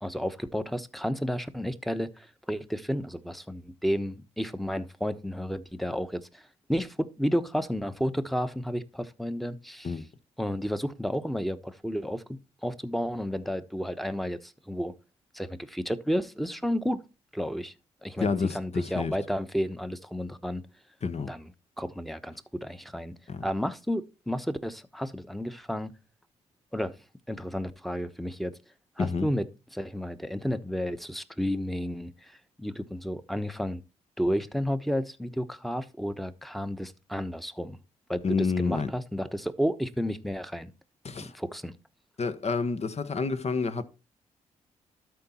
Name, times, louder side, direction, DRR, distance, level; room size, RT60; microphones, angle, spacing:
voice 1, 0.0-6.4 6.7-9.9 10.4-14.9 15.3-17.0 17.3-17.7 18.0-20.6 21.3-22.3 22.6-23.1 23.4-25.9 26.7-27.0 27.3-28.5 29.0-32.3 32.6-33.8 34.2-37.8 38.1-40.7 41.2-41.7, equal, ahead, 1.1 m, -32 dB
voice 2, 18.2-19.1 21.0-21.3 23.3-23.4 29.0-29.3 38.2-38.9 41.0-41.3 42.2-43.8, left 4 dB, 40° left, 1.2 m, -29 dB
12.5 x 4.5 x 4.3 m
hypercardioid pair, 45°, 16 cm